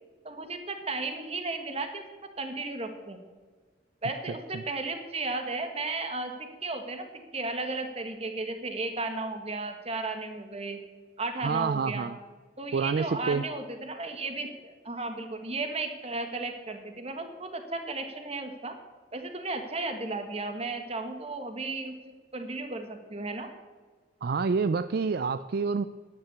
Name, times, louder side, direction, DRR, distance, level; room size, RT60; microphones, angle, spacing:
voice 1, 0.2-2.0 2.4-3.2 4.0-10.8 11.2-12.1 12.6-18.7 19.1-22.0 22.3-23.5, right 3 dB, 35° right, 6 dB, 1.5 m, -34 dB
voice 2, 11.4-12.2 12.7-13.4 24.2-25.8, right 5 dB, 60° right, 12 dB, 0.4 m, -28 dB
10.0 x 9.8 x 8.3 m, 1.4 s
head